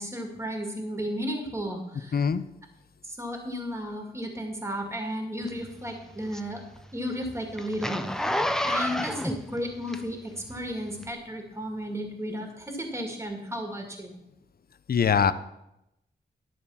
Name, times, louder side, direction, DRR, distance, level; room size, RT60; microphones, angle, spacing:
voice 1, 0.0-2.3 3.0-6.6 6.9-8.4 8.7-14.2, equal, 15° right, 3 dB, 2.1 m, -34 dB
voice 2, 2.1-2.5 14.9-15.3, left 6 dB, 55° left, 14 dB, 0.6 m, -22 dB
Zipper (clothing), 5.5-10.4 11.0-11.1, left 1 dB, 5° left, 0.6 m, -30 dB
11.0 x 6.9 x 5.6 m, 0.86 s
wide cardioid pair, 95°, 19 cm